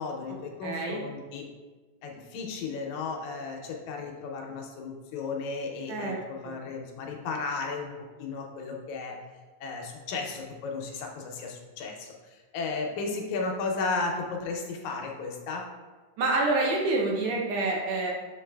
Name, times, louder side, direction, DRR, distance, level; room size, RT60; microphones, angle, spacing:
voice 1, 0.0-1.4 2.0-7.9 8.2-9.2 9.6-12.1 12.5-15.6, left 4 dB, 80° left, 1 dB, 2.0 m, -34 dB
voice 2, 0.6-1.0 5.9-6.2 6.4-6.6 16.2-18.1, right 2 dB, 75° right, -1 dB, 1.7 m, -27 dB
7.1 x 3.2 x 2.2 m, 1.3 s
omnidirectional pair, 3.3 m